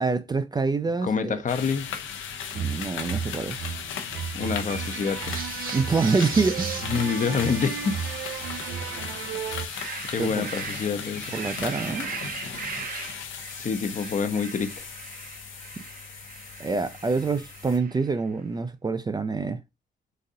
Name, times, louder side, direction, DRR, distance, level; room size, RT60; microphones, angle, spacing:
voice 1, 0.0-1.4 2.5-3.6 5.7-6.8 10.2-10.5 11.3-12.1 16.6-19.6, right 4 dB, 20° right, 0.4 m, -26 dB
voice 2, 1.0-1.9 4.0-5.4 6.8-8.0 10.1-11.3 13.6-14.9, left 5 dB, 40° left, 0.6 m, -27 dB
sound 1, 1.5-17.8, left 7 dB, 80° left, 0.7 m, -37 dB
sound 2, 2.5-9.7, right 8 dB, 75° right, 0.5 m, -34 dB
sound 3, 5.2-9.1 9.5-18.2, right 5 dB, 45° right, 0.8 m, -39 dB
4.0 x 2.5 x 2.5 m
cardioid pair, 90°, 20 cm